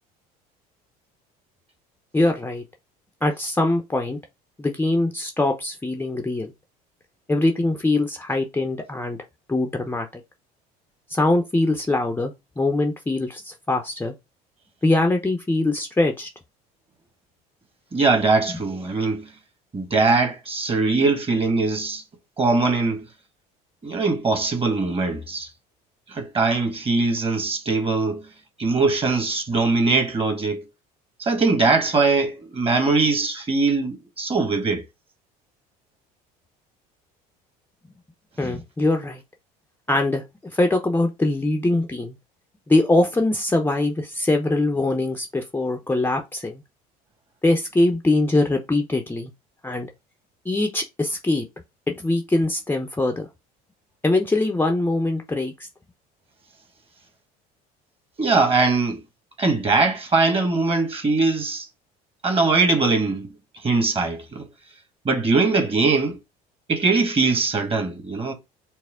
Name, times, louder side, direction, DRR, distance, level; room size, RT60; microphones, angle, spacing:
voice 1, 2.1-2.6 3.2-4.2 4.6-6.5 7.3-9.2 9.5-10.2 11.1-14.1 14.8-16.3 18.5-18.6 38.4-39.2 39.9-40.2 40.5-42.2 42.7-46.6 47.4-49.3 49.6-49.9 50.5-51.5 51.9-53.3 54.0-55.7, left 2 dB, 10° left, 0.6 m, -22 dB
voice 2, 17.9-19.3 19.7-22.0 22.4-23.1 23.8-25.5 26.1-28.3 28.6-30.6 31.2-34.8 58.2-59.0 59.4-61.7 62.2-63.3 63.6-64.5 65.0-66.2 66.7-68.3, right 3 dB, 30° right, 1.3 m, -21 dB
4.3 x 2.0 x 3.5 m
supercardioid pair, 80°, 19 cm